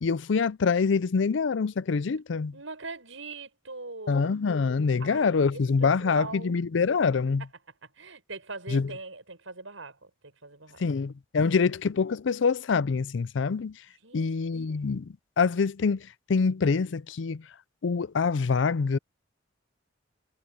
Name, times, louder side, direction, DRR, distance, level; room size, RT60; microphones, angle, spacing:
voice 1, 0.0-2.5 4.1-7.4 8.7-8.9 10.8-13.8 14.1-17.4 17.8-19.0, left 5 dB, 65° left, 0.5 m, -25 dB
voice 2, 2.5-4.4 5.0-6.9 7.7-10.8 11.4-11.7 14.0-14.3 14.7-14.8, right 3 dB, 80° right, 6.6 m, -42 dB
head